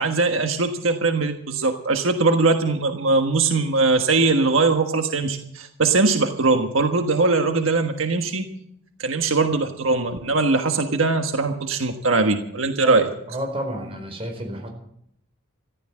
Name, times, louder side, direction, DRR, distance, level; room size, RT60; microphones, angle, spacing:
voice 1, 0.0-8.5 9.0-13.1, right 3 dB, 85° right, 5 dB, 1.4 m, -21 dB
voice 2, 13.3-14.7, right 1 dB, 30° right, 3 dB, 4.5 m, -30 dB
14.5 x 12.5 x 7.5 m, 0.73 s
head